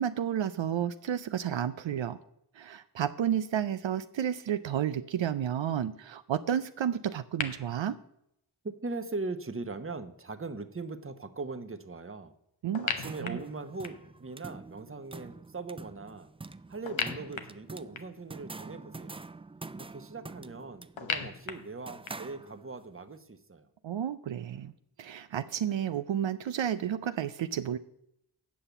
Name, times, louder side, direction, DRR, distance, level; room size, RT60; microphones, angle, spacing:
voice 1, 0.0-2.2 2.6-8.0 12.6-12.9 13.2-13.4 23.8-24.7 25.0-27.8, right 9 dB, 80° right, 11 dB, 0.5 m, -31 dB
sound 1, 7.4-7.5 12.7-14.2 16.9-18.3 21.0-22.4, left 6 dB, 90° left, 1.0 m, -36 dB
voice 2, 8.6-12.3 12.8-16.3 16.7-19.2 19.7-23.7, right 3 dB, 30° right, 9 dB, 1.0 m, -40 dB
sound 2, 12.7-22.9, right 3 dB, 15° right, 0.3 m, -46 dB
8.6 x 5.6 x 8.0 m, 0.77 s
cardioid pair, 45°, 45 cm